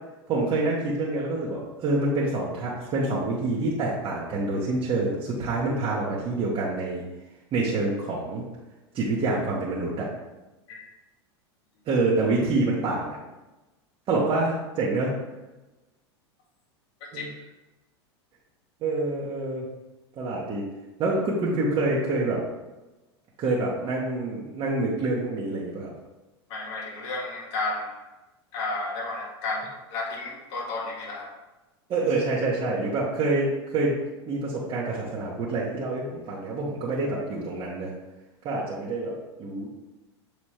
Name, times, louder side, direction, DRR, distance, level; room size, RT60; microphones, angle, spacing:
voice 1, 0.3-7.0 7.5-8.4 8.9-10.1 11.9-13.2 14.1-15.1 17.1-17.3 18.8-19.6 20.2-20.7 21.0-22.4 23.4-25.9 31.9-34.0 34.2-37.9 38.4-39.7, right 2 dB, 35° right, -6 dB, 1.4 m, -27 dB
voice 2, 26.5-28.0 28.5-31.3, left 3 dB, 55° left, -3 dB, 2.0 m, -32 dB
7.4 x 4.0 x 3.3 m, 1.1 s
hypercardioid pair, 110°, 14 cm